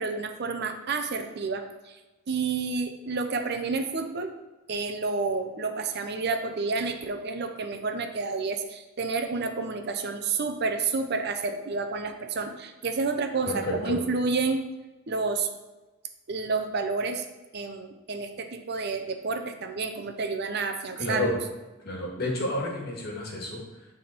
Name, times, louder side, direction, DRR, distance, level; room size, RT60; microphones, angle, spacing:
voice 1, 0.0-2.0 2.3-4.3 4.7-14.6 15.1-15.5 16.3-17.2 17.5-21.3, right 4 dB, 50° right, 6 dB, 0.6 m, -30 dB
voice 2, 13.4-14.0 20.9-21.4 21.8-23.9, left 1 dB, 50° left, -1 dB, 1.5 m, -30 dB
9.0 x 3.6 x 4.3 m, 1.1 s
head